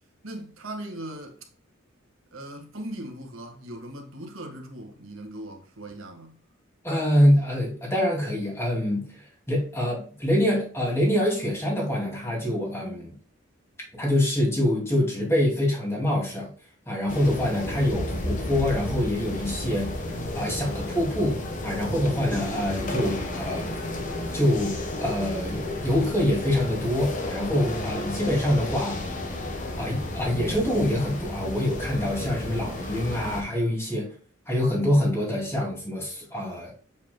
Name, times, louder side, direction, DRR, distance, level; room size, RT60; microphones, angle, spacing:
voice 1, 0.2-1.4 2.3-6.4, right 1 dB, 80° right, 1.6 m, -39 dB
voice 2, 6.8-13.1 13.9-16.5 16.9-19.9 20.3-23.7 24.3-24.8 25.0-29.0 29.8-34.1 34.5-36.7, left 1 dB, 15° left, 2.5 m, -25 dB
sound 1, 17.1-33.4, left 1 dB, 40° left, 1.2 m, -32 dB
7.3 x 5.8 x 2.2 m
head